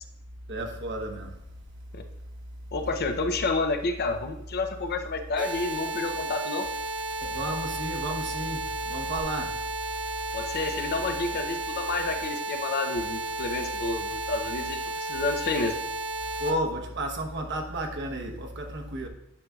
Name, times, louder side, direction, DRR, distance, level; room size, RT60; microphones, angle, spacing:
voice 1, 0.5-1.3 7.2-9.6 16.4-19.1, right 1 dB, 55° right, 1.0 m, -32 dB
voice 2, 2.7-6.7 10.3-15.7, left 3 dB, 50° left, 0.6 m, -30 dB
sound 1, 5.4-16.5, right 2 dB, 20° right, 0.9 m, -33 dB
9.7 x 5.4 x 2.4 m
head